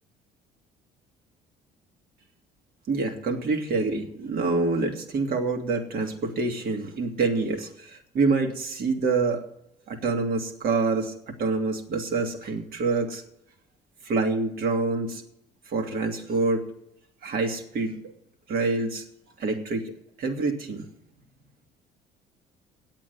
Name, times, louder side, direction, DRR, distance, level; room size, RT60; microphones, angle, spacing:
voice 1, 2.9-9.4 9.9-13.2 14.0-15.2 15.7-16.7 17.2-18.0 18.5-19.0 19.4-19.9 20.2-20.9, right 3 dB, 60° right, 4 dB, 2.1 m, -26 dB
8.9 x 8.8 x 9.4 m, 0.77 s
supercardioid pair, 75°, 17 cm